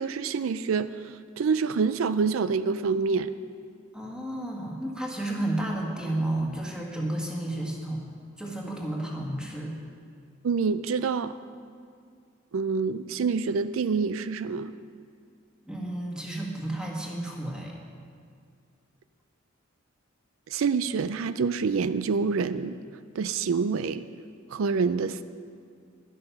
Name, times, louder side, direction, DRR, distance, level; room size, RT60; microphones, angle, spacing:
voice 1, 0.0-3.3 10.4-11.3 12.5-14.7 20.5-22.8 23.2-24.1 24.5-25.2, right 5 dB, 85° right, 13 dB, 0.4 m, -27 dB
voice 2, 3.9-8.0 8.4-9.8 15.6-17.7, right 1 dB, 5° right, -2 dB, 1.7 m, -32 dB
12.0 x 11.0 x 5.8 m, 2.2 s
head